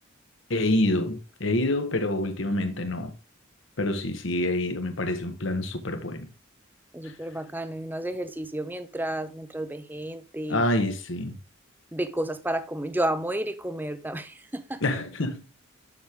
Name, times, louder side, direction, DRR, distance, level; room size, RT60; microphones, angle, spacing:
voice 1, 0.5-3.1 3.8-6.3 10.5-11.4 14.8-15.4, left 1 dB, 70° left, 1.2 m, -27 dB
voice 2, 6.9-10.6 11.9-14.8, right 1 dB, 10° right, 0.5 m, -31 dB
7.2 x 6.5 x 3.5 m
head